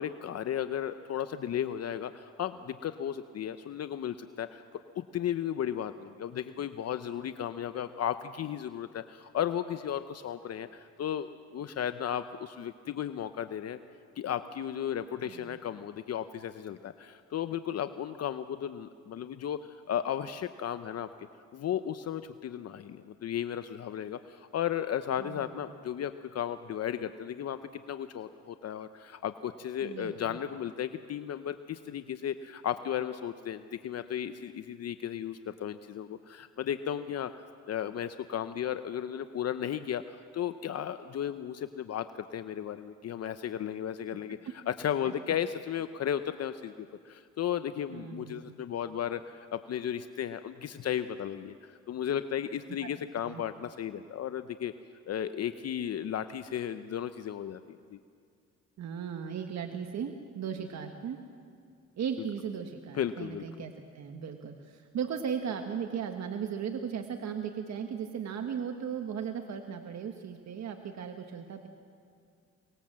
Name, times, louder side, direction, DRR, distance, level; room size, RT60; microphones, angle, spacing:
voice 1, 0.0-4.6 4.9-13.8 14.2-21.1 21.5-27.6 27.9-37.3 37.7-54.7 55.1-58.0 62.9-63.7, left 9 dB, 55° left, 11 dB, 0.8 m, -35 dB
voice 2, 15.3-15.6 25.2-25.8 29.8-30.4 44.3-44.4 45.0-45.1 47.9-48.4 52.8-52.9 53.2-53.4 58.8-61.2 62.0-71.7, right 7 dB, 60° right, 5 dB, 1.5 m, -37 dB
24.5 x 20.0 x 7.5 m, 2.3 s
cardioid pair, 90°, 30 cm